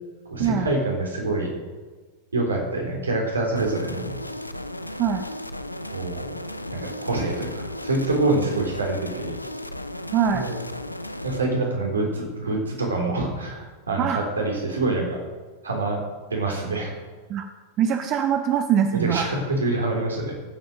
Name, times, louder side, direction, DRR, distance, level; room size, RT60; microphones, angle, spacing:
voice 1, 0.3-1.5 2.3-4.1 5.9-6.3 6.7-9.3 10.3-10.5 11.2-15.2 15.6-16.0 16.3-16.9 19.0-20.3, right 2 dB, 75° right, 0 dB, 3.5 m, -26 dB
sound 1, 3.5-11.4, left 1 dB, 85° left, 0.6 m, -35 dB
voice 2, 10.1-10.5 14.0-14.2 17.3-17.4 17.8-19.3, right 8 dB, 35° right, 8 dB, 0.8 m, -22 dB
15.5 x 7.9 x 6.5 m, 1.4 s
figure-of-eight pair, 90°, 0 cm